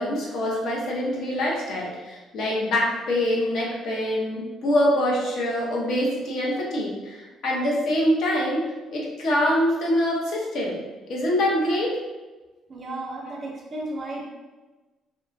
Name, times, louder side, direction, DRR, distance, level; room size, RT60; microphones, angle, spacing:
voice 1, 0.0-10.8 11.1-12.0, left 1 dB, 60° left, -3 dB, 0.7 m, -24 dB
voice 2, 12.7-14.2, right 2 dB, 30° right, -1 dB, 0.4 m, -33 dB
2.9 x 2.2 x 2.5 m, 1.2 s
cardioid pair, 155°, 0 cm